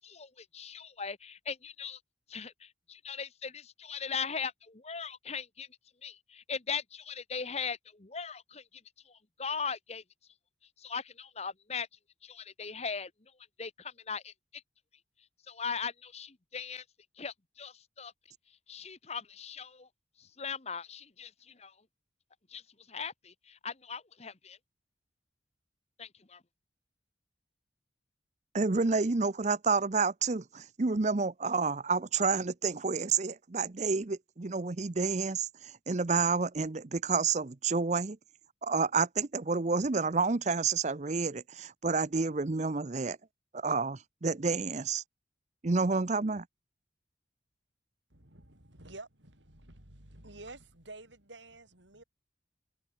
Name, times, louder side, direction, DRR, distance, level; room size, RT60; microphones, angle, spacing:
voice 1, 0.0-2.0 2.3-5.7 6.0-8.6 9.1-10.0 10.8-11.9 12.2-13.1 13.6-14.6 15.5-16.8 17.2-18.1 18.7-19.9 20.2-21.7 22.5-22.6 22.9-24.6 26.0-26.4, left 6 dB, 35° left, 1.2 m, -39 dB
voice 2, 28.5-38.2 38.6-43.2 43.5-45.0 45.6-46.4, right 4 dB, 40° right, 0.7 m, -29 dB
voice 3, 50.2-50.6 50.9-51.6 51.9-52.0, right 2 dB, 85° right, 7.6 m, -46 dB
head